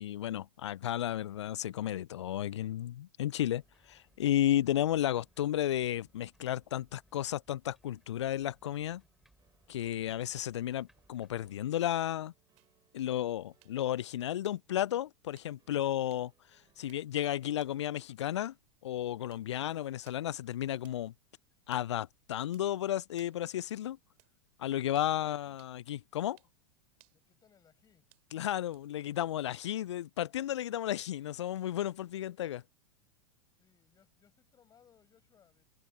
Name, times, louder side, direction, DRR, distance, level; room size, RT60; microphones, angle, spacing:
voice 1, 0.0-9.0 9.7-12.3 12.9-18.5 18.8-21.1 21.7-24.0 24.6-26.4 28.3-32.6, left 12 dB, 70° left, 0.4 m, -33 dB
sound 1, 3.4-11.6, right 1 dB, ahead, 4.0 m, -69 dB
sound 2, 9.4-17.7, right 9 dB, 25° right, 6.1 m, -75 dB
sound 3, 12.6-30.0, right 28 dB, 45° right, 4.2 m, -70 dB
voice 2, 27.1-28.1 33.6-35.6, left 8 dB, 25° left, 6.7 m, -67 dB
figure-of-eight pair, 95°, 15 cm